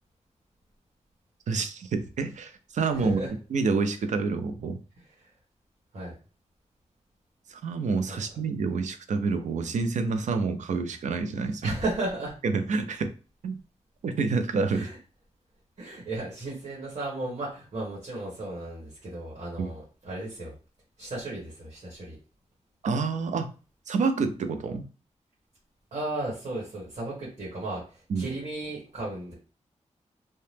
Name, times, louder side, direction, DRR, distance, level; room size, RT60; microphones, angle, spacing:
voice 1, 1.5-3.2 3.5-4.8 7.5-11.7 12.4-13.1 13.4-13.6 14.0-14.9 19.6-19.7 22.8-23.5 23.9-24.8 28.1-28.3, right 4 dB, 75° right, 8 dB, 0.4 m, -28 dB
voice 2, 2.9-3.3 5.0-5.3 5.9-6.1 8.1-8.2 11.6-12.3 14.7-15.0 15.8-20.5 21.0-22.2 25.9-29.3, right 2 dB, 55° right, -5 dB, 1.3 m, -35 dB
2.8 x 2.1 x 3.2 m, 0.36 s
wide cardioid pair, 165°, 12 cm